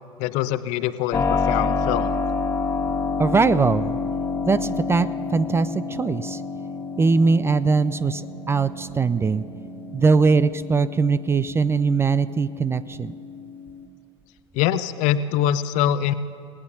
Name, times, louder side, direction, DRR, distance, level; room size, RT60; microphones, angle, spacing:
voice 1, 0.2-2.1 14.5-16.1, left 11 dB, 50° left, 13 dB, 0.7 m, -23 dB
Keyboard (musical), 1.1-13.8, left 4 dB, 15° left, 1.8 m, -29 dB
voice 2, 3.2-4.0 4.4-6.4 7.0-9.4 9.9-13.1, right 4 dB, 15° right, 17 dB, 0.4 m, -21 dB
29.5 x 18.0 x 2.7 m, 2.6 s
figure-of-eight pair, 70°, 16 cm